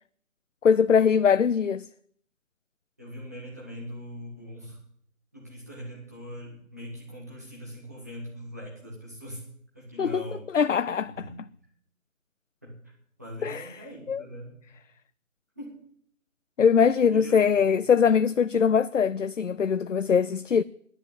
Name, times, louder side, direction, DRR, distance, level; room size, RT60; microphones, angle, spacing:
voice 1, 0.6-1.9 10.0-10.2 10.5-11.3 13.4-13.7 14.1-14.2 16.6-20.6, left 6 dB, 70° left, 0.5 m, -22 dB
voice 2, 3.0-4.8 5.3-9.4 9.7-10.6 11.0-11.4 12.6-12.8 13.2-14.6 15.6-15.7 17.1-17.7, equal, 10° right, 1.8 m, -41 dB
11.0 x 9.9 x 8.0 m
figure-of-eight pair, 170°, 40 cm